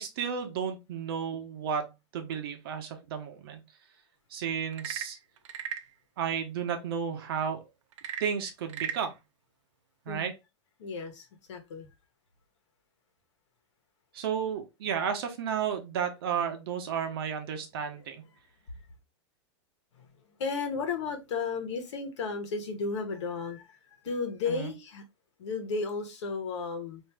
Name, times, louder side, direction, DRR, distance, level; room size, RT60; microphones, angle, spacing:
voice 1, 0.0-3.6 4.3-5.2 6.2-7.6 8.2-9.1 10.1-10.3 14.1-18.2 24.5-24.7, right 7 dB, 55° right, 0.9 m, -33 dB
Frog / Percussion / Wood, 4.6-5.9 7.9-9.1, right 9 dB, 85° right, 0.5 m, -37 dB
voice 2, 10.8-11.9 20.0-20.1 20.4-25.0 25.4-27.0, left 4 dB, 70° left, 1.1 m, -34 dB
3.0 x 2.7 x 3.4 m
supercardioid pair, 175°, 15 cm